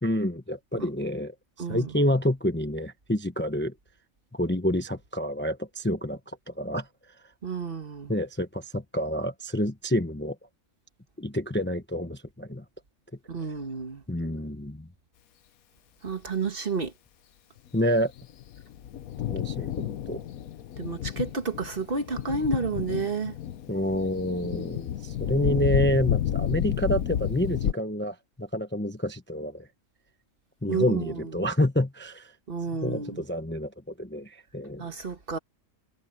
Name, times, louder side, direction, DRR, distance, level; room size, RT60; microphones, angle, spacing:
voice 1, 0.0-1.3 1.7-3.7 4.3-6.2 6.5-6.9 8.1-10.4 11.2-12.6 14.1-14.9 17.7-18.1 19.3-20.2 23.7-29.7 30.6-32.3 32.8-33.7 34.0-34.9, equal, 10° left, 0.8 m, -28 dB
voice 2, 1.6-1.9 7.4-8.1 13.3-14.0 16.0-16.9 20.8-23.4 30.7-31.3 32.5-33.2 34.8-35.4, right 4 dB, 45° right, 1.5 m, -31 dB
Thunder, 18.0-27.7, left 10 dB, 90° left, 1.3 m, -31 dB
omnidirectional pair, 1.4 m